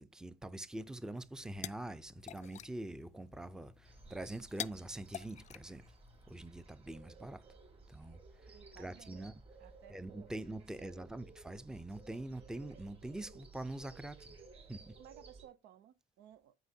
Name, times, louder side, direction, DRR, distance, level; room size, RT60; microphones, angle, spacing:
voice 1, 0.0-5.8 6.3-7.4 7.9-8.2 8.4-9.3 9.9-14.4 14.7-14.9, right 1 dB, 5° right, 0.6 m, -44 dB
sound 1, 1.2-6.5, left 10 dB, 45° left, 0.4 m, -49 dB
sound 2, 3.8-15.4, right 3 dB, 35° right, 2.9 m, -57 dB
voice 2, 8.5-9.3 9.6-10.3 10.6-11.3 15.0-16.5, right 10 dB, 80° right, 0.7 m, -59 dB
12.0 x 5.2 x 2.8 m
cardioid pair, 110°, 17 cm